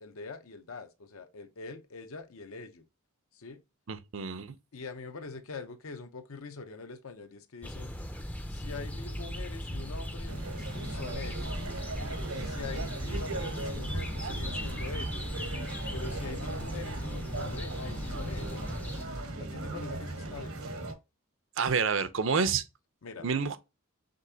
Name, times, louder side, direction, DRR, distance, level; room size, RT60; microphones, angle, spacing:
voice 1, 0.0-2.9 3.3-3.6 4.7-7.9 8.5-10.4 10.7-11.7 12.3-15.4 15.9-18.7 19.4-20.6 23.0-23.3, left 4 dB, 75° left, 0.7 m, -44 dB
voice 2, 3.9-4.5 21.6-22.6 23.2-23.6, right 5 dB, 60° right, 0.6 m, -28 dB
sound 1, 7.6-19.1, equal, 5° left, 0.4 m, -38 dB
sound 2, 10.3-20.9, right 2 dB, 80° right, 1.2 m, -38 dB
5.2 x 3.3 x 2.7 m
head